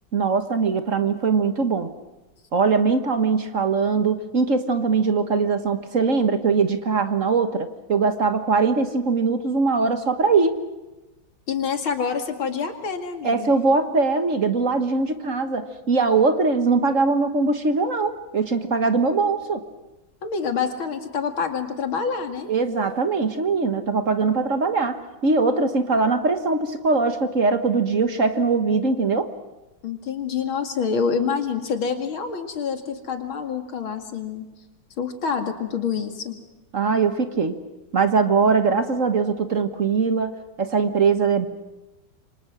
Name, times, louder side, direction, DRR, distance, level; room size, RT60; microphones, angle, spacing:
voice 1, 0.1-1.9 2.5-10.6 13.2-19.6 22.5-29.3 36.7-37.5 37.9-41.5, right 4 dB, 45° right, 8 dB, 1.6 m, -21 dB
voice 2, 11.5-13.5 20.2-22.5 29.8-34.5 35.0-36.4, left 6 dB, 90° left, 6 dB, 3.1 m, -27 dB
28.0 x 24.5 x 6.2 m, 1.0 s
omnidirectional pair, 2.2 m